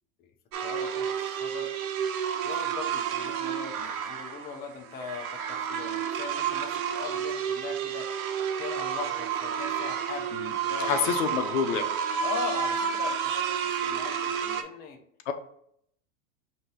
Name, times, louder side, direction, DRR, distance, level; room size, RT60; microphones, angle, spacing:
sound 1, 0.5-14.6, right 8 dB, 75° right, 0.7 m, -30 dB
voice 1, 0.6-1.7 2.4-8.1 8.5-11.2 12.2-15.0, left 4 dB, 25° left, 3 dB, 0.5 m, -39 dB
voice 2, 10.9-11.9 15.3-15.4, left 7 dB, 70° left, 7 dB, 0.7 m, -27 dB
5.1 x 2.8 x 3.1 m, 0.70 s
supercardioid pair, 125°, 41 cm